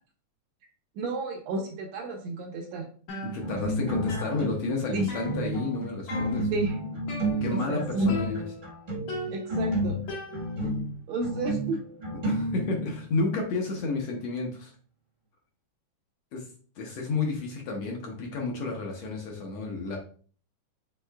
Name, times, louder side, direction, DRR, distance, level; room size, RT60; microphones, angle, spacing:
voice 1, 1.0-2.9 4.9-5.1 6.5-6.8 7.5-8.1 9.3-10.0 11.1-11.8, right 1 dB, 75° right, 2 dB, 1.7 m, -31 dB
sound 1, 3.1-3.8 4.1-5.8 6.1-6.6 7.1-7.8 8.1-8.7 9.1-10.8, left 1 dB, 85° left, 3.1 m, -38 dB
voice 2, 3.3-6.5 7.4-8.4 12.2-14.7 16.3-16.4 16.8-20.0, left 3 dB, 70° left, 0 dB, 1.7 m, -31 dB
sound 2, 3.4-4.7 5.0-13.1, right 1 dB, 40° right, 0.7 m, -31 dB
6.4 x 3.6 x 2.3 m, 0.43 s
omnidirectional pair, 3.5 m